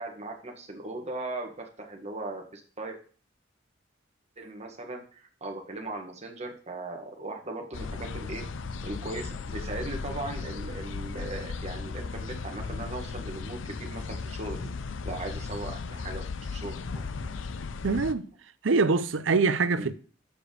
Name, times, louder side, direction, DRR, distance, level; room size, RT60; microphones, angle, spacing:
voice 1, 0.0-3.0 4.4-8.4 8.8-14.7 15.0-16.2 16.5-17.0 19.7-19.9, right 2 dB, 35° right, 1.7 m, -38 dB
sound 1, 7.7-18.1, left 4 dB, 80° left, 0.5 m, -36 dB
voice 2, 17.8-18.3 18.6-20.0, right 4 dB, 80° right, 0.6 m, -24 dB
7.1 x 5.1 x 6.5 m
head